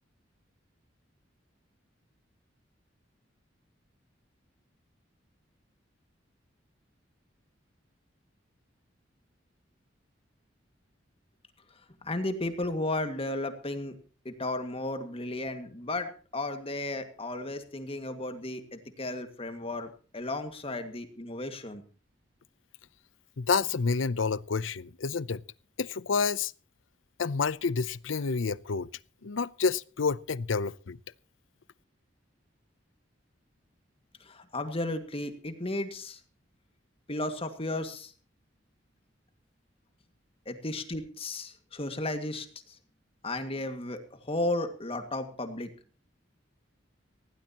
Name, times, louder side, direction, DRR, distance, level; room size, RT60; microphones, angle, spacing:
voice 1, 12.0-14.0 14.3-21.8 34.2-36.2 37.1-38.1 40.5-42.8 43.2-45.7, left 2 dB, 30° left, 2.0 m, -34 dB
voice 2, 23.4-25.4 25.8-26.5 27.2-28.9 29.2-31.0, left 5 dB, 90° left, 0.6 m, -29 dB
19.5 x 16.5 x 2.9 m
head